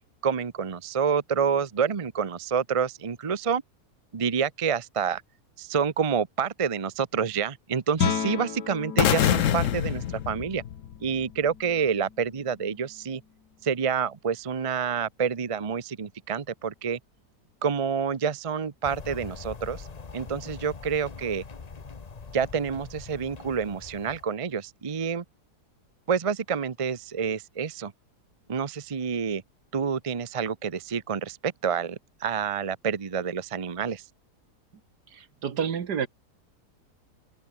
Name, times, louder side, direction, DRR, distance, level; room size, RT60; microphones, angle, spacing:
voice 1, 0.2-3.6 4.1-5.2 5.6-10.6 11.0-13.2 13.6-17.0 17.6-19.9 20.1-21.4 22.3-25.2 26.1-27.9 28.5-29.4 29.7-34.0, right 6 dB, 30° right, 0.6 m, -28 dB
Guitar, 7.9-13.5, left 7 dB, 75° left, 2.2 m, -35 dB
sound 1, 9.0-11.1, left 10 dB, 55° left, 1.1 m, -25 dB
sound 2, 18.8-24.2, left 4 dB, 30° left, 1.0 m, -42 dB
voice 2, 35.1-36.1, right 7 dB, 75° right, 2.1 m, -29 dB
omnidirectional pair, 1.8 m